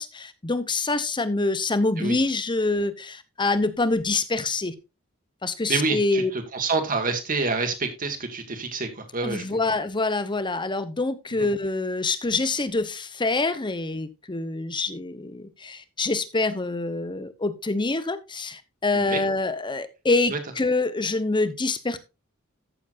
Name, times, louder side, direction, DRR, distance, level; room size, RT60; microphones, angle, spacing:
voice 1, 0.0-4.7 5.4-6.3 9.2-22.0, left 3 dB, 20° left, 13 dB, 0.9 m, -26 dB
voice 2, 5.7-9.4 11.4-11.5 18.9-19.2 20.3-20.4, right 4 dB, 40° right, 6 dB, 2.1 m, -27 dB
14.0 x 7.3 x 2.6 m, 0.26 s
head